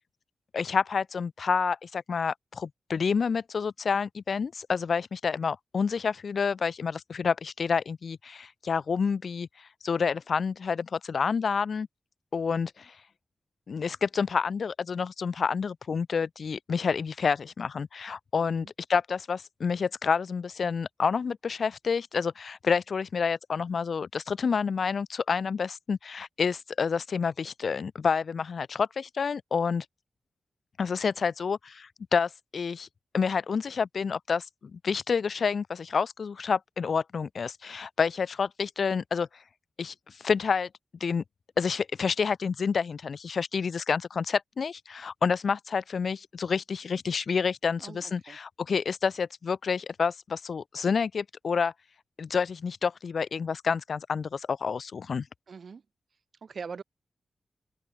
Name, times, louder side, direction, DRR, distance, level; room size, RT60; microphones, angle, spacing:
voice 1, 0.5-11.9 12.3-13.0 13.7-29.9 30.8-32.9 33.1-39.3 39.8-40.7 41.0-41.2 41.6-51.7 52.2-55.3, left 5 dB, 70° left, 2.3 m, -29 dB
voice 2, 55.5-55.8 56.4-56.8, right 5 dB, 70° right, 2.5 m, -41 dB
cardioid pair, 40°, 0 cm